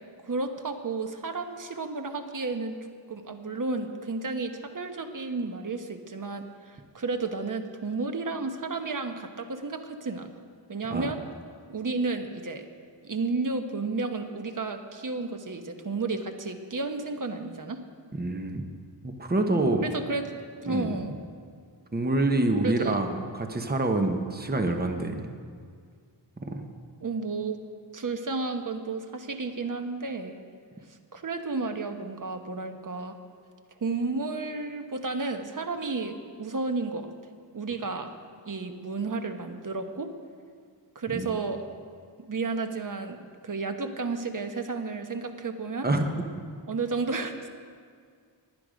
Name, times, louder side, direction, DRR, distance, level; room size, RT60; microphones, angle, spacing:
voice 1, 0.2-2.8 3.1-10.3 10.7-11.2 11.7-12.7 13.0-17.8 19.8-20.2 20.6-21.2 22.6-23.0 27.0-27.6 27.9-30.4 30.8-33.2 33.8-37.1 37.5-38.1 38.4-40.1 40.9-41.6 42.3-43.2 43.4-45.9 46.7-47.5, right 3 dB, 45° right, 6 dB, 1.1 m, -32 dB
voice 2, 18.2-18.6 19.0-19.9 20.7-20.9 21.9-25.3 26.4-26.7 41.1-41.4 45.8-46.1, right 2 dB, 20° right, 5 dB, 1.1 m, -27 dB
17.0 x 10.5 x 5.2 m, 2.1 s
wide cardioid pair, 100°, 44 cm